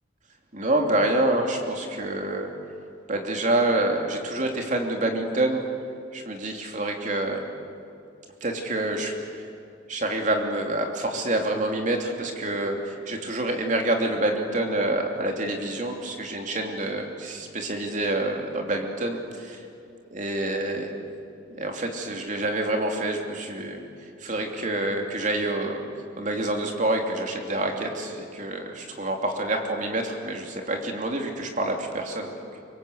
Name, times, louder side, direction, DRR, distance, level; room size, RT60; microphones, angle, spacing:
voice 1, 0.5-2.5 3.1-5.6 6.1-7.5 8.4-9.1 9.9-19.6 20.1-20.9 21.5-23.8 24.2-25.8 26.2-32.6, right 1 dB, 40° right, 2 dB, 3.0 m, -27 dB
25.0 x 23.5 x 8.2 m, 2.5 s
head